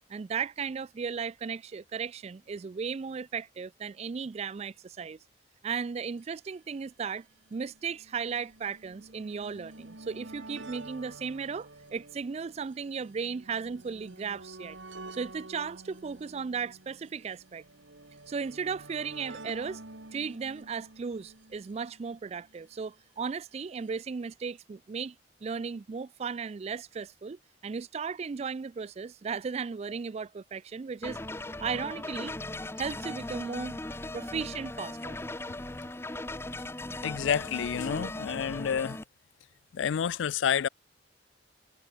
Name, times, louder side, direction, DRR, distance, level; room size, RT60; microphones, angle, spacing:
voice 1, 0.1-5.2 5.6-7.3 7.5-14.8 15.1-17.6 18.3-19.8 20.1-25.2 25.4-31.2 31.6-32.4 32.8-33.8 34.1-35.2, right 5 dB, 35° right, 0.3 m, -36 dB
sound 1, 6.2-6.3 6.4-6.5 7.4-22.6 23.6-23.7 23.9-24.0, right 2 dB, 80° right, 2.9 m, -49 dB
sound 2, 31.0-39.0, left 2 dB, 15° left, 0.9 m, -38 dB
voice 2, 37.0-39.0 39.7-40.7, left 8 dB, 80° left, 0.4 m, -29 dB
head